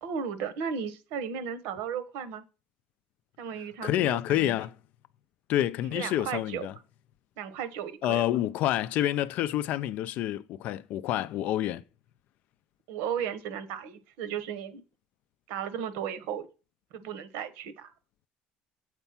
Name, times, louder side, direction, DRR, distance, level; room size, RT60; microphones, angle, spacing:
voice 1, 0.0-2.4 3.4-4.6 5.9-6.7 7.4-8.2 12.9-14.8 15.5-16.5 16.9-17.9, right 7 dB, 85° right, 1.1 m, -35 dB
voice 2, 3.8-4.7 5.5-6.7 8.0-11.8, left 13 dB, 55° left, 0.5 m, -28 dB
8.1 x 4.5 x 5.7 m
cardioid pair, 170°, 3 cm